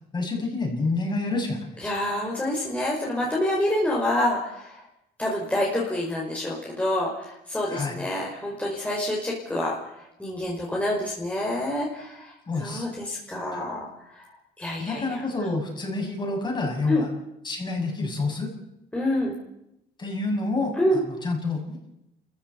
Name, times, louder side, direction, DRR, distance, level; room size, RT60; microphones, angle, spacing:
voice 1, 0.1-1.6 7.7-8.0 12.5-12.9 14.8-17.1 17.4-18.5 20.0-21.8, left 3 dB, 25° left, 1 dB, 7.1 m, -28 dB
voice 2, 1.8-4.7 5.2-9.8 10.2-12.3 12.6-13.9 14.6-15.6 16.9-17.0 18.9-19.3 20.8-21.0, left 1 dB, 10° left, -3 dB, 5.2 m, -27 dB
28.5 x 15.0 x 8.5 m, 0.85 s
cardioid pair, 110°, 17 cm